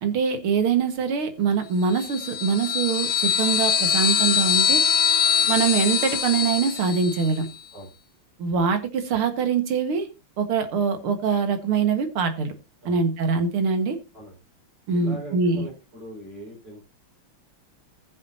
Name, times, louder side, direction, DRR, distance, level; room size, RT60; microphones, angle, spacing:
voice 1, 0.0-4.8 5.5-7.5 8.4-10.1 10.4-12.5 12.9-14.0 14.9-15.7, right 5 dB, 80° right, 7 dB, 2.4 m, -23 dB
sound 1, 1.9-7.4, left 8 dB, 75° left, 0.8 m, -23 dB
voice 2, 14.9-16.8, right 2 dB, 50° right, -3 dB, 5.4 m, -41 dB
19.0 x 7.5 x 2.7 m, 0.26 s
omnidirectional pair, 2.3 m